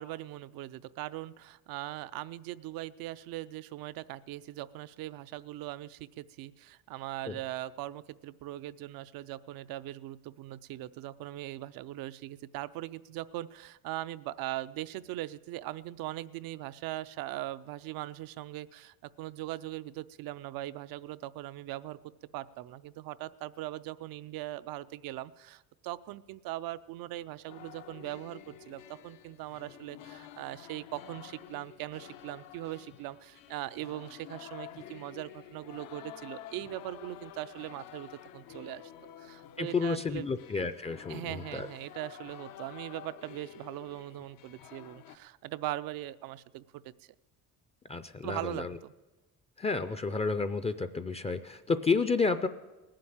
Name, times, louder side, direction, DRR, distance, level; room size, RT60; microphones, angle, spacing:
voice 1, 0.0-22.0 22.3-38.9 39.2-40.3 41.1-46.6 48.2-48.9, right 15 dB, 85° right, 14 dB, 0.6 m, -40 dB
sound 1, 27.5-45.2, left 11 dB, 80° left, 0.8 m, -50 dB
voice 2, 39.6-41.7 47.9-48.8 49.6-52.5, left 4 dB, 20° left, 11 dB, 0.4 m, -31 dB
19.0 x 7.6 x 8.7 m, 1.1 s
cardioid pair, 140°, 34 cm